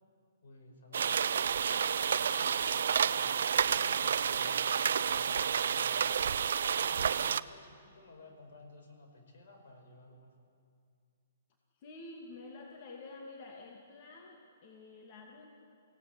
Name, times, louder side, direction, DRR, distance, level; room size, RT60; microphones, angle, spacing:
voice 1, 0.4-6.0 6.8-10.4, left 2 dB, 70° left, 3 dB, 5.5 m, -55 dB
sound 1, 0.9-7.4, right 7 dB, 70° right, 0.6 m, -30 dB
voice 2, 11.8-15.6, left 3 dB, 45° left, 0 dB, 2.6 m, -49 dB
23.5 x 17.5 x 9.5 m, 2.3 s
hypercardioid pair, 145°, 0 cm